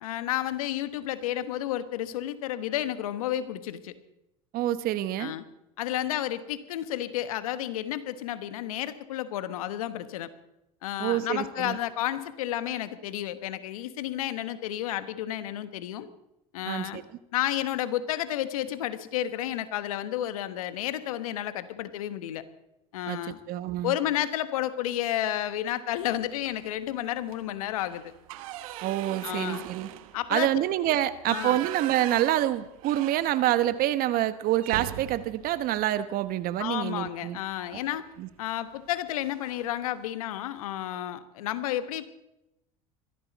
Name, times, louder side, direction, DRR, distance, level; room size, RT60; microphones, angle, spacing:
voice 1, 0.0-3.9 5.2-5.4 5.8-10.3 10.8-16.1 16.5-17.0 17.3-22.4 22.9-23.4 23.8-28.1 29.2-29.7 30.1-30.5 31.3-31.6 36.6-38.1 38.4-42.1, left 12 dB, 80° left, 12 dB, 1.3 m, -31 dB
voice 2, 4.5-5.3 11.0-11.8 16.7-17.0 23.1-24.0 28.8-29.9 30.3-37.4 37.7-37.8 38.2-38.3, right 13 dB, 55° right, 13 dB, 1.2 m, -27 dB
sound 1, 26.4-26.8 27.2-27.4 27.7-33.8 34.1-34.2 34.6-36.7 38.1-38.3 38.7-38.9 39.2-39.8, right 13 dB, 75° right, 1.1 m, -41 dB
22.0 x 15.0 x 4.1 m, 0.88 s
hypercardioid pair, 80°, 18 cm